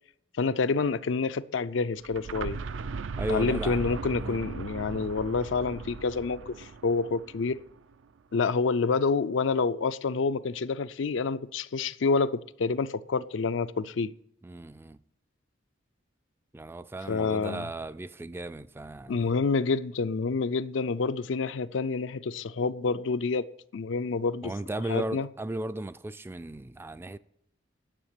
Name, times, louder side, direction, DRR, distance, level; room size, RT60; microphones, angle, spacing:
voice 1, 0.4-2.6 3.3-7.6 8.3-14.1 17.1-17.7 19.1-23.5 23.7-24.5 24.9-25.3, left 4 dB, 70° left, 0.5 m, -28 dB
sound 1, 2.0-7.8, right 4 dB, 80° right, 0.5 m, -37 dB
voice 2, 3.2-4.4 14.4-15.0 16.5-19.3 24.4-27.2, right 1 dB, 10° right, 0.3 m, -36 dB
10.0 x 6.5 x 8.9 m
head